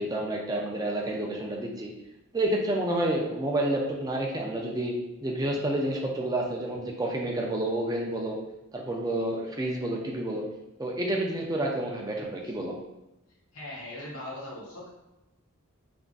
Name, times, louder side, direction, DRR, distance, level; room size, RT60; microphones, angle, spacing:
voice 1, 0.0-1.9 2.3-4.9 5.2-8.4 8.7-10.4 10.8-12.7, right 1 dB, 20° right, 0 dB, 0.4 m, -29 dB
voice 2, 13.5-14.9, left 1 dB, 85° left, -4 dB, 1.3 m, -39 dB
3.4 x 2.4 x 3.8 m, 0.96 s
head